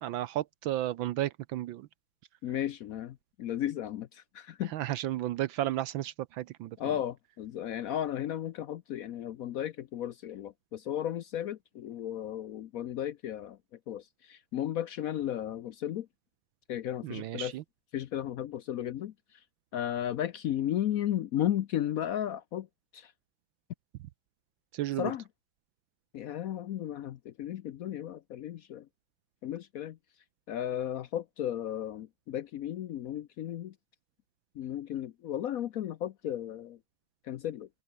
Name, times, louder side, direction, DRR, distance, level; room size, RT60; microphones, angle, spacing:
voice 1, 0.0-1.8 4.7-6.7 17.0-17.6 24.8-25.1, right 14 dB, 75° right, 1.4 m, -33 dB
voice 2, 2.4-4.7 6.8-13.6 13.9-16.1 16.7-17.5 17.9-19.1 19.7-22.7 22.9-23.1 25.0-25.2 26.1-28.9 29.4-30.0 30.5-33.7 34.6-36.8 37.3-37.7, left 11 dB, 80° left, 0.7 m, -34 dB
omnidirectional pair, 2.3 m